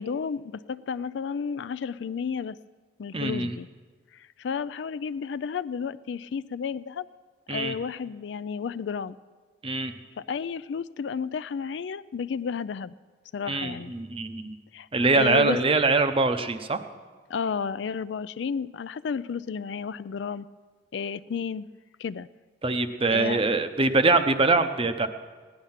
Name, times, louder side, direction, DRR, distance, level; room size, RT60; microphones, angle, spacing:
voice 1, 0.0-2.6 3.0-3.7 4.4-7.1 7.5-9.2 10.3-12.9 13.3-13.9 14.7-14.9 15.1-15.6 17.3-20.5 20.9-21.7 22.0-22.3 23.1-23.5, left 6 dB, 70° left, 16 dB, 0.4 m, -32 dB
voice 2, 3.1-3.6 7.5-7.7 9.6-9.9 13.5-14.6 14.9-16.8 22.6-25.1, right 3 dB, 30° right, 8 dB, 0.7 m, -23 dB
16.5 x 11.0 x 5.7 m, 1.5 s
head